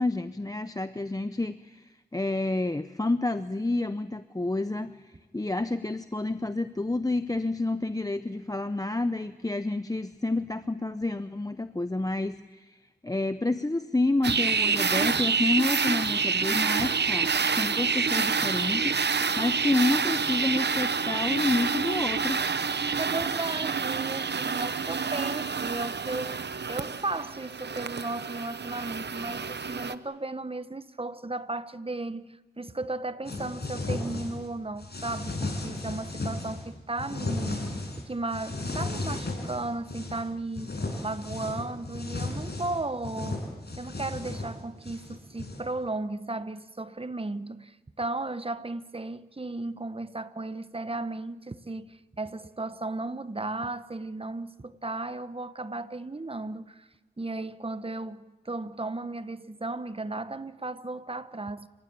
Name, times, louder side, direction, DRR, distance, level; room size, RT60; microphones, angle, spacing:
voice 1, 0.0-22.4, left 2 dB, 20° left, 0.7 m, -29 dB
sound 1, 14.2-29.9, right 5 dB, 85° right, 0.8 m, -28 dB
voice 2, 23.0-37.8 38.1-43.5 43.8-56.9 57.2-61.7, right 2 dB, 35° right, 1.1 m, -35 dB
sound 2, 33.2-34.5 34.8-36.6 37.0-38.0 38.3-40.2 40.5-45.7, left 2 dB, 70° left, 6.0 m, -34 dB
29.5 x 16.0 x 8.7 m
wide cardioid pair, 60°, 17 cm